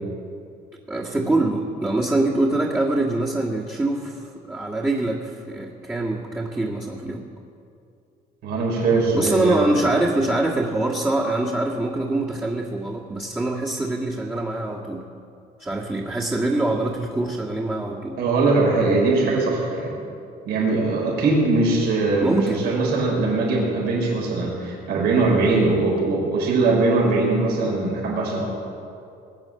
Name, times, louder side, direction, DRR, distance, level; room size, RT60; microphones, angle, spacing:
voice 1, 0.9-7.3 9.1-15.0 15.6-18.2 22.2-22.7, right 2 dB, 10° right, -4 dB, 1.7 m, -24 dB
voice 2, 8.4-9.6 18.2-20.0 20.5-28.5, right 3 dB, 75° right, -2 dB, 4.5 m, -21 dB
20.5 x 9.0 x 7.6 m, 2.5 s
cardioid pair, 110°, 17 cm